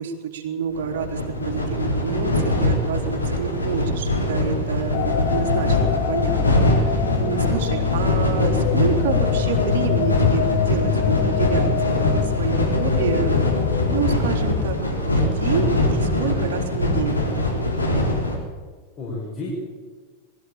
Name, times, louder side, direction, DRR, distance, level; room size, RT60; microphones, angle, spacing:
voice 1, 0.0-13.4 13.9-17.3, right 7 dB, 55° right, 1 dB, 3.7 m, -28 dB
sound 1, 0.7-18.4, left 1 dB, 85° left, 4.2 m, -23 dB
voice 2, 2.9-3.4 16.2-16.5 19.0-19.5, left 3 dB, 30° left, -6 dB, 6.7 m, -33 dB
sound 2, 4.9-14.8, left 10 dB, 45° left, 1.3 m, -24 dB
21.5 x 14.5 x 9.0 m, 1.5 s
figure-of-eight pair, 90°, 0 cm